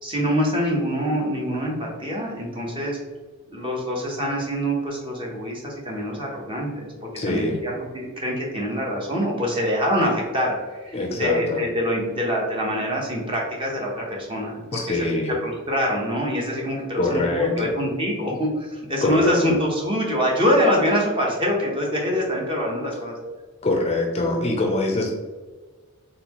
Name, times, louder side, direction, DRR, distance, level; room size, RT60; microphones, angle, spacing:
voice 1, 0.0-3.0 3.5-15.0 15.4-23.2, equal, 25° right, -2 dB, 0.9 m, -25 dB
voice 2, 7.2-7.6 10.9-11.6 14.7-15.3 17.0-17.7 19.0-19.6 23.6-25.2, left 2 dB, 30° left, 1 dB, 0.5 m, -24 dB
4.2 x 3.5 x 2.9 m, 1.4 s
head